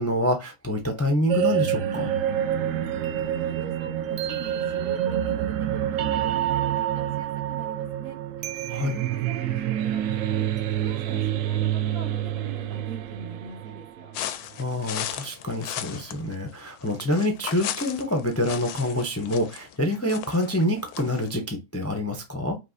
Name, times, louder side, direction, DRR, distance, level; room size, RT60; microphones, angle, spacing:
voice 1, 0.0-2.1 8.7-9.0 14.5-22.6, left 1 dB, 20° left, 0.4 m, -26 dB
sound 1, 1.3-14.3, right 10 dB, 70° right, 0.9 m, -27 dB
voice 2, 2.9-8.2 8.7-10.5 10.8-14.2, right 4 dB, 90° right, 2.3 m, -43 dB
sound 2, 14.1-21.3, left 11 dB, 85° left, 1.1 m, -36 dB
5.3 x 2.9 x 2.6 m
omnidirectional pair, 1.6 m